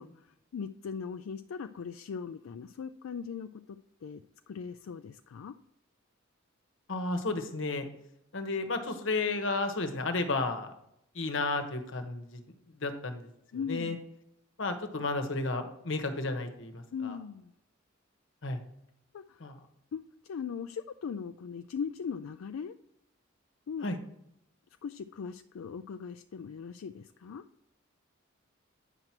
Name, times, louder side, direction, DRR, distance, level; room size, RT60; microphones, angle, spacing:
voice 1, 0.0-4.2 4.5-5.5 13.5-14.0 16.9-17.5 19.1-19.5 19.9-22.7 23.7-23.9 24.8-27.4, left 6 dB, 85° left, 9 dB, 0.4 m, -39 dB
voice 2, 6.9-7.8 8.3-10.7 11.1-12.4 12.7-13.3 13.7-14.0 14.6-17.2 18.4-18.6 19.4-19.5 23.8-24.0, left 3 dB, 65° left, 6 dB, 1.1 m, -32 dB
9.0 x 5.8 x 4.5 m, 0.77 s
head